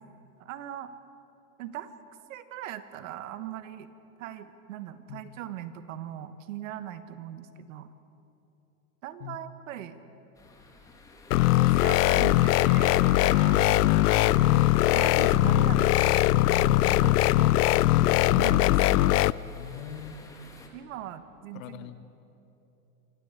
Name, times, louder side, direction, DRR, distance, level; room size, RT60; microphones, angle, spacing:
voice 1, 0.4-0.9 1.6-1.9 2.3-3.9 4.2-7.9 9.0-10.0 11.5-13.0 13.4-14.0 14.9-16.2 16.6-19.2 20.7-21.9, right 11 dB, 55° right, 12 dB, 1.3 m, -40 dB
sound 1, 10.3-20.7, left 2 dB, 5° left, 1.5 m, -52 dB
sound 2, 11.3-19.3, left 16 dB, 80° left, 0.6 m, -21 dB
Wind instrument woodwind instrument, 11.7-16.2, right 11 dB, 35° right, 1.0 m, -47 dB
voice 2, 14.4-14.7 19.5-20.2 21.5-22.0, left 10 dB, 60° left, 11 dB, 1.3 m, -41 dB
25.5 x 14.5 x 8.1 m, 3.0 s
supercardioid pair, 165°, 46 cm